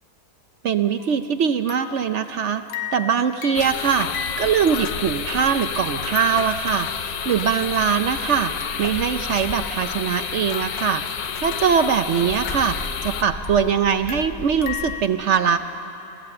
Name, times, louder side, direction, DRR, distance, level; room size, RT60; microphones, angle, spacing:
voice 1, 0.6-2.6 2.9-4.1 4.4-8.5 8.8-15.6, right 7 dB, 60° right, 9 dB, 0.7 m, -22 dB
sound 1, 1.0-1.2 1.7-8.2 8.6-9.1 9.6-11.9 12.3-15.0, left 8 dB, 90° left, 1.5 m, -37 dB
sound 2, 3.5-13.2, left 8 dB, 70° left, 1.3 m, -30 dB
sound 3, 7.1-9.9 10.4-14.9, left 2 dB, 25° left, 1.5 m, -39 dB
27.5 x 15.5 x 7.6 m, 2.9 s
omnidirectional pair, 1.8 m